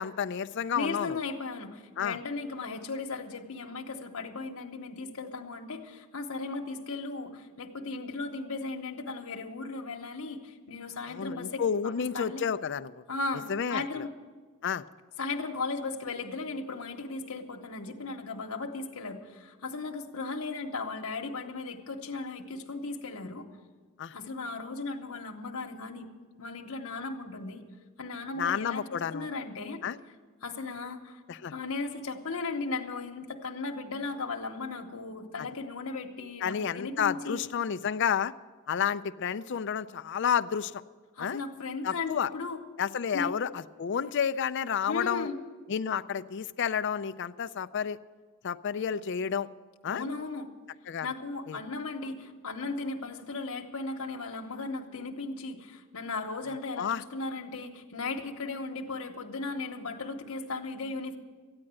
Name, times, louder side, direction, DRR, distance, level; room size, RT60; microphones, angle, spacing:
voice 1, 0.0-1.2 2.0-2.2 11.1-13.0 13.5-14.1 14.6-14.8 24.0-24.2 28.4-29.3 29.8-30.0 31.3-31.5 35.4-35.5 36.4-38.3 38.7-40.8 41.2-41.4 41.8-42.3 42.8-45.3 45.7-48.0 48.4-49.5 49.8-50.0 50.9-51.1 51.5-51.6 56.8-57.0, left 7 dB, 55° left, 13 dB, 0.4 m, -30 dB
voice 2, 0.7-12.4 13.1-14.1 15.2-23.5 24.1-26.1 26.4-27.6 28.0-29.8 30.4-31.2 31.5-37.4 41.1-42.6 43.1-43.3 44.9-45.4 49.9-50.5 51.0-61.2, left 3 dB, 90° left, 1 dB, 1.1 m, -36 dB
14.0 x 9.7 x 7.6 m, 1.4 s
head